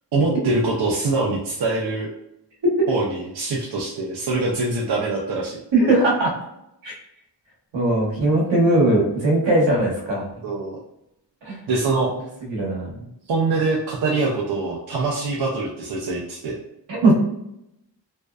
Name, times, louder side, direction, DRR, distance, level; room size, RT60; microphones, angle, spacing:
voice 1, 0.1-2.1 2.9-5.6 10.4-10.8 11.7-12.1 13.3-16.6, right 3 dB, 60° right, -3 dB, 0.6 m, -24 dB
voice 2, 5.7-6.3 6.8-6.9 7.7-10.5 11.4-11.6 12.5-12.9 16.9-17.1, right 2 dB, 80° right, -3 dB, 1.1 m, -19 dB
2.6 x 2.1 x 2.2 m, 0.80 s
cardioid pair, 55°, 43 cm